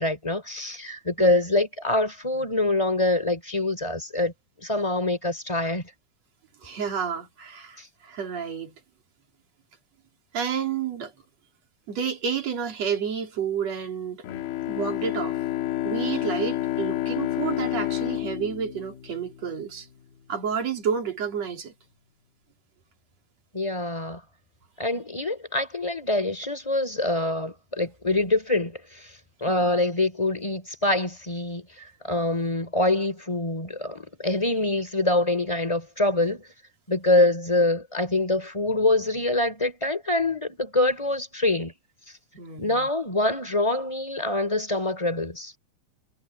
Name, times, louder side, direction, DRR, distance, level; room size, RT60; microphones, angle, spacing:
voice 1, 0.0-4.3 4.6-5.9 7.8-7.9 23.5-24.2 24.8-29.1 29.4-36.4 36.9-41.7 42.6-45.5, left 2 dB, 10° left, 3.8 m, -25 dB
voice 2, 6.6-8.7 10.3-11.1 11.9-14.3 14.7-15.4 15.8-19.9 20.3-21.7 29.5-29.7 42.4-42.9, right 7 dB, 45° right, 4.3 m, -30 dB
Bowed string instrument, 14.2-19.8, left 14 dB, 85° left, 3.1 m, -29 dB
omnidirectional pair, 4.3 m